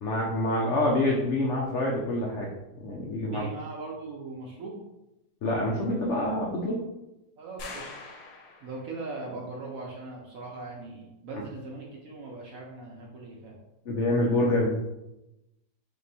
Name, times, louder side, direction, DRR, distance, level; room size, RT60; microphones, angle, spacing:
voice 1, 0.0-2.5 2.8-3.4 5.4-6.8 13.9-14.7, left 1 dB, 90° left, -2 dB, 0.6 m, -26 dB
voice 2, 3.2-4.8 7.4-7.9 8.6-13.6, right 3 dB, 65° right, -2 dB, 0.9 m, -40 dB
sound 1, 7.6-9.1, left 3 dB, 65° left, 1.1 m, -43 dB
3.7 x 2.8 x 4.1 m, 0.93 s
omnidirectional pair, 2.1 m